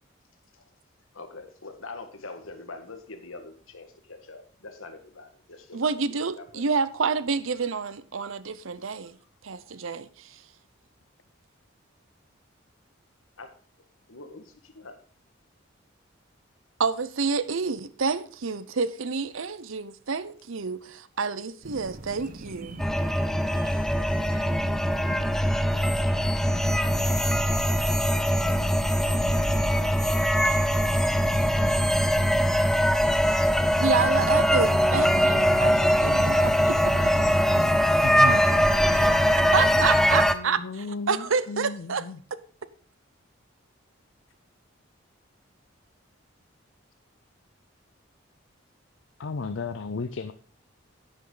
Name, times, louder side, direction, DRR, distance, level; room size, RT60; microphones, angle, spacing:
voice 1, 1.1-5.8 6.1-6.6 8.8-8.9 9.6-9.8 13.4-13.5 14.1-15.0 38.1-39.7 40.1-40.2, left 3 dB, 90° left, 1.6 m, -43 dB
voice 2, 5.7-9.1 9.4-10.3 16.8-22.8 27.0-27.2 33.8-37.1 38.9-39.1 39.5-42.1, right 5 dB, 80° right, 0.7 m, -28 dB
sound 1, 21.6-39.9, right 1 dB, 40° right, 1.1 m, -37 dB
sound 2, 22.8-40.4, equal, ahead, 0.5 m, -22 dB
voice 3, 38.0-38.4 40.0-42.2 49.2-50.3, left 4 dB, 70° left, 0.5 m, -34 dB
10.5 x 9.0 x 3.9 m
head